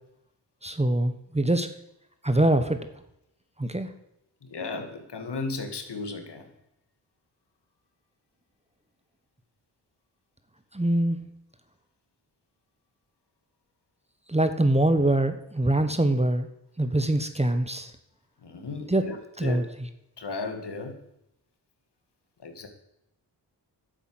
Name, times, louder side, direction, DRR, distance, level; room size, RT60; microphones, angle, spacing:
voice 1, 0.6-1.7 2.2-2.8 3.6-3.9 10.7-11.3 14.3-16.5 16.8-17.9 18.9-19.1 19.4-19.6, right 1 dB, 15° right, 9 dB, 1.2 m, -24 dB
voice 2, 4.4-6.5 18.4-19.7 20.2-21.0 22.4-22.7, left 3 dB, 65° left, 5 dB, 2.2 m, -35 dB
10.0 x 8.1 x 7.9 m, 0.82 s
cardioid pair, 45°, 45 cm